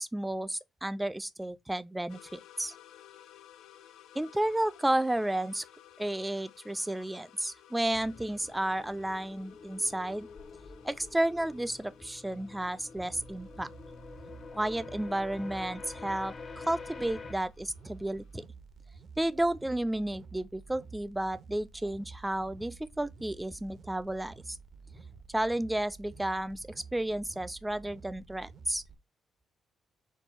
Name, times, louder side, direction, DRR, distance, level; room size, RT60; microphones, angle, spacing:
voice 1, 0.0-2.7 4.1-5.6 6.0-10.3 10.8-13.7 14.5-18.4 19.2-24.6 25.3-28.8, right 1 dB, 10° right, 0.4 m, -32 dB
sound 1, 2.1-18.4, left 11 dB, 85° left, 0.6 m, -58 dB
sound 2, 7.9-17.3, left 4 dB, 40° left, 0.7 m, -47 dB
sound 3, 13.0-29.0, right 5 dB, 50° right, 0.7 m, -51 dB
4.6 x 2.3 x 4.1 m
cardioid pair, 90°, 0 cm